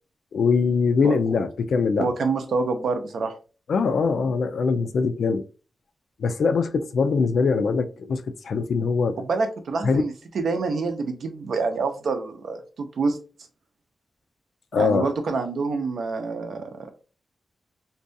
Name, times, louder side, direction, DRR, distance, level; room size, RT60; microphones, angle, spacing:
voice 1, 0.3-2.1 3.7-5.4 6.2-9.2 9.8-10.0 14.7-15.1, left 5 dB, 85° left, 0.3 m, -22 dB
voice 2, 2.0-3.3 9.2-13.2 14.7-16.9, right 4 dB, 85° right, 0.5 m, -27 dB
2.6 x 2.2 x 2.5 m
wide cardioid pair, 100°, 0 cm